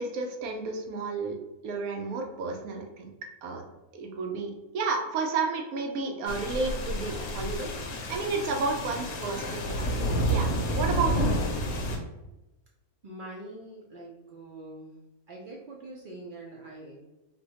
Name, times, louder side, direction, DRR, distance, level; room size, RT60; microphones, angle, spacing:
voice 1, 0.0-1.4 1.6-3.1 3.4-3.6 3.9-10.0 10.3-11.4, right 4 dB, 85° right, 2 dB, 1.1 m, -32 dB
sound 1, 6.3-12.0, equal, 70° left, 0.9 m, -30 dB
voice 2, 13.0-14.9 15.3-17.1, right 2 dB, 65° right, -2 dB, 0.5 m, -44 dB
4.0 x 2.2 x 2.8 m, 0.99 s
omnidirectional pair, 1.5 m